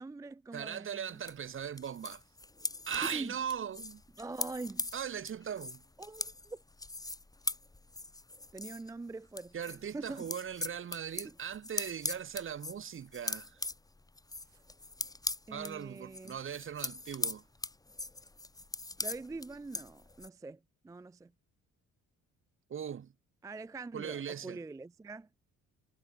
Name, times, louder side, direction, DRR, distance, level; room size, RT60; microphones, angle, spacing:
voice 1, 0.0-1.0 3.1-3.4 4.2-4.9 6.0-6.6 8.5-10.3 15.5-16.4 19.0-20.6 20.8-21.3 23.4-25.3, right 3 dB, 10° right, 0.4 m, -44 dB
voice 2, 0.5-2.2 2.9-4.0 4.9-5.8 9.5-13.6 15.5-17.4 22.7-23.1 23.9-24.6, right 8 dB, 45° right, 1.1 m, -39 dB
sound 1, 1.3-8.9 9.3-20.3, left 2 dB, 10° left, 1.2 m, -41 dB
cardioid pair, 90°, 30 cm